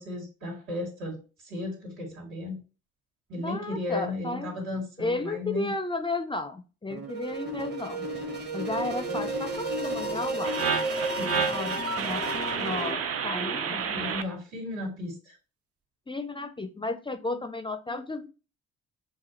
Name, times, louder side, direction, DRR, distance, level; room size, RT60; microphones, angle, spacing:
voice 1, 0.0-2.6 3.3-5.7 11.2-11.4 13.9-15.3, left 2 dB, 75° right, -4 dB, 2.5 m, -35 dB
voice 2, 3.3-4.6 5.0-8.1 8.5-10.5 11.5-12.2 12.6-14.0 16.1-18.3, left 2 dB, 15° left, 9 dB, 0.4 m, -33 dB
sound 1, 6.9-12.9, right 1 dB, 35° right, 1.1 m, -32 dB
sound 2, 10.4-14.2, right 6 dB, 50° right, 0.5 m, -30 dB
6.1 x 2.3 x 2.9 m, 0.33 s
cardioid pair, 90°, 30 cm